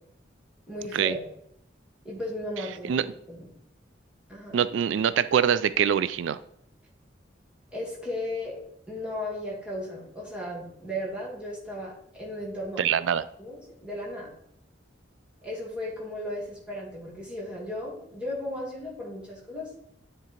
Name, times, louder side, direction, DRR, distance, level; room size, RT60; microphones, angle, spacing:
voice 1, 0.7-1.2 2.0-3.0 3.3-3.5 4.3-4.6 7.7-8.6 8.9-12.8 13.4-14.3 15.4-19.7, left 1 dB, 5° right, -5 dB, 2.4 m, -35 dB
voice 2, 4.5-6.4 12.8-13.2, right 8 dB, 85° right, 15 dB, 0.3 m, -24 dB
9.9 x 3.7 x 4.4 m, 0.73 s
head